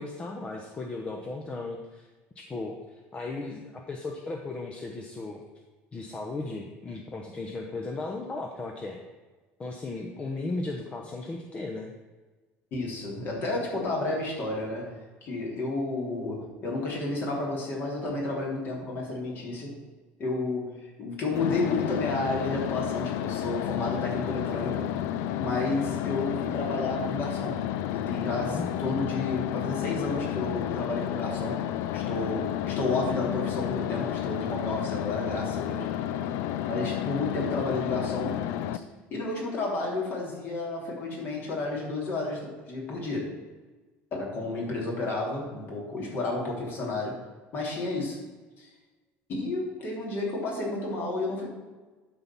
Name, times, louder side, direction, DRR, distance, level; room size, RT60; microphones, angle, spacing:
voice 1, 0.0-2.1 2.4-5.4 5.9-9.0 9.6-11.9 28.5-28.7, left 3 dB, 25° left, 2 dB, 0.9 m, -36 dB
voice 2, 12.7-19.8 20.2-24.9 25.4-27.6 27.9-31.6 31.9-36.0 36.7-38.4 39.1-43.3 44.1-47.1 47.5-48.2 48.6-48.7 49.3-51.5, left 2 dB, 45° left, -2 dB, 3.2 m, -31 dB
sound 1, 21.3-38.8, left 11 dB, 70° left, 0.5 m, -31 dB
11.5 x 4.2 x 6.0 m, 1.3 s
cardioid pair, 130°, 5 cm